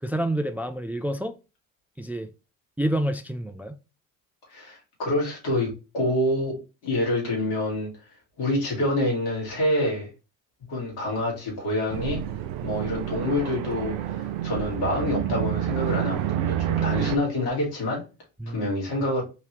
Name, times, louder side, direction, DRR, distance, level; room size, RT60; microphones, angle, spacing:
voice 1, 0.0-1.3 2.0-2.3 2.8-3.8 18.4-18.7, right 1 dB, 5° right, 0.3 m, -28 dB
voice 2, 4.5-7.9 8.4-10.1 10.7-12.3 12.6-18.0 18.5-19.2, left 1 dB, 70° left, 2.1 m, -27 dB
sound 1, 11.9-17.2, right 10 dB, 75° right, 0.6 m, -28 dB
3.8 x 2.8 x 3.1 m
hypercardioid pair, 50°, 38 cm